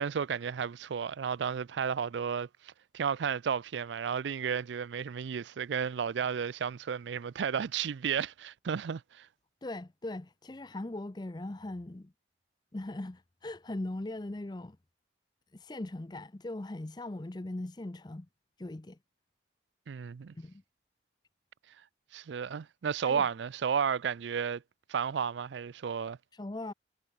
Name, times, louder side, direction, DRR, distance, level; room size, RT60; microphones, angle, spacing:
voice 1, 0.0-9.3 19.9-20.3 22.1-24.6 24.9-26.2, right 7 dB, 80° right, 0.4 m, -33 dB
voice 2, 9.6-12.1 12.7-14.8 15.5-18.3 18.6-19.0 20.3-20.6 23.0-23.3 26.3-26.7, left 2 dB, 25° left, 0.5 m, -39 dB
head